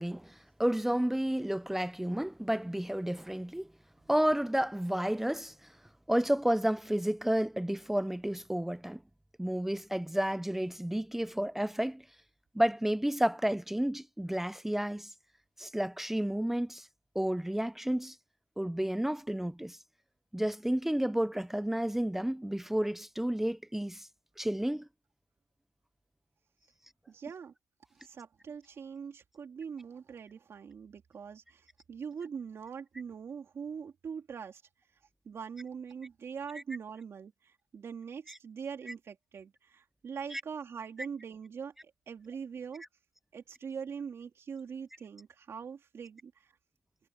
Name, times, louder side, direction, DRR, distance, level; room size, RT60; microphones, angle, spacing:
voice 1, 0.0-3.7 4.1-5.7 6.1-9.0 9.4-12.0 12.5-15.1 15.6-16.9 17.1-18.2 18.6-19.8 20.3-24.1 24.4-24.9 40.3-40.4, right 1 dB, 5° right, 0.6 m, -31 dB
voice 2, 27.1-27.5 27.9-34.6 35.2-42.8 43.3-46.5, right 6 dB, 55° right, 3.3 m, -42 dB
cardioid pair, 105°, 5 cm